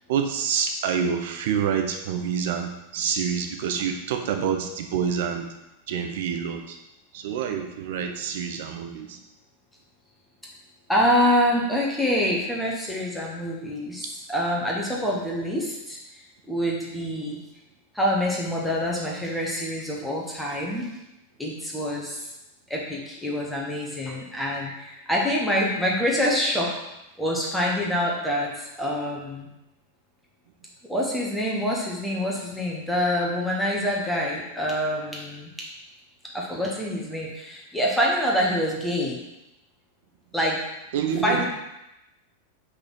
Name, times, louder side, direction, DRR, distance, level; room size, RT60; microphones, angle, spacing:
voice 1, 0.1-5.5 5.9-6.8 7.1-9.2 40.9-41.4, right 7 dB, 55° right, 5 dB, 0.9 m, -27 dB
voice 2, 10.9-16.2 16.5-17.4 17.9-20.9 21.4-22.3 22.7-26.7 27.2-29.5 30.9-35.7 36.3-39.2 40.3-40.6 41.2-41.5, equal, 5° left, -3 dB, 1.6 m, -26 dB
5.5 x 4.2 x 5.5 m, 0.92 s
figure-of-eight pair, 90°, 0 cm